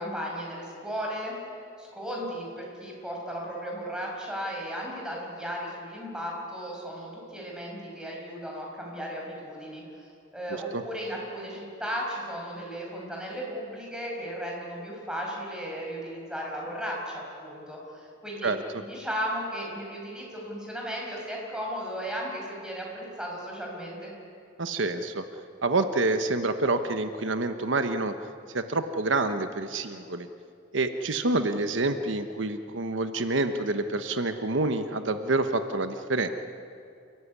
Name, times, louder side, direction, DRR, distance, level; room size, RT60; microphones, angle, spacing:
voice 1, 0.0-1.4 1.8-18.5 18.8-24.1, equal, 5° right, -2 dB, 6.1 m, -35 dB
voice 2, 18.4-18.8 24.6-25.2 25.6-28.1 28.5-30.3 30.7-36.3, right 2 dB, 80° right, 9 dB, 1.1 m, -27 dB
28.5 x 15.5 x 9.7 m, 2.5 s
head